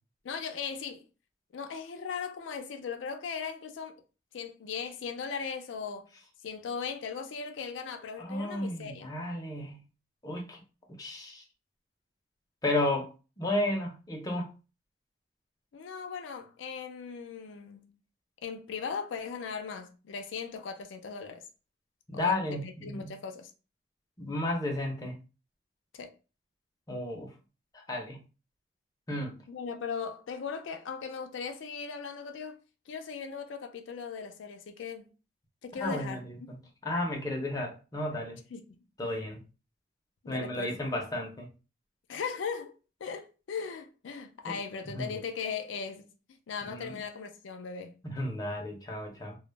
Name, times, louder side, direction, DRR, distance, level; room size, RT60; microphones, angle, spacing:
voice 1, 0.2-1.1 1.5-4.0 4.3-6.1 6.4-9.1 15.7-18.0 18.4-21.5 22.1-23.5 25.9-26.1 29.5-32.6 32.9-35.1 35.6-36.2 37.4-37.5 38.5-39.1 40.2-40.7 42.1-42.7 43.0-48.0, left 6 dB, 90° left, 0.4 m, -38 dB
voice 2, 8.2-9.8 10.2-10.6 10.9-11.4 12.6-13.1 13.4-14.5 22.1-23.1 24.2-25.1 26.9-27.3 27.7-28.2 29.1-29.4 35.8-36.6 36.8-38.4 39.0-39.4 40.3-41.5 44.5-44.6 44.9-45.2 46.6-47.0 48.0-49.4, left 1 dB, 20° left, 0.6 m, -33 dB
2.2 x 2.0 x 3.2 m
head